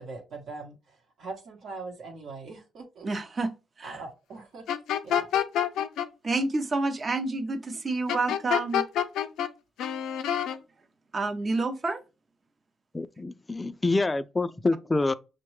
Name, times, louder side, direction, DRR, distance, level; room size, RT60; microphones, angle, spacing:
voice 1, 0.0-3.1 3.8-4.6 5.0-5.3, right 3 dB, 65° right, 0.9 m, -41 dB
voice 2, 3.0-4.0 6.2-8.8 11.1-12.0, right 3 dB, 35° right, 0.6 m, -29 dB
sound 1, 4.7-6.1 8.1-9.5 9.8-10.6, left 9 dB, 80° left, 0.5 m, -27 dB
voice 3, 12.9-15.1, left 2 dB, 20° left, 0.3 m, -26 dB
6.2 x 2.2 x 3.1 m
cardioid pair, 90°, 0 cm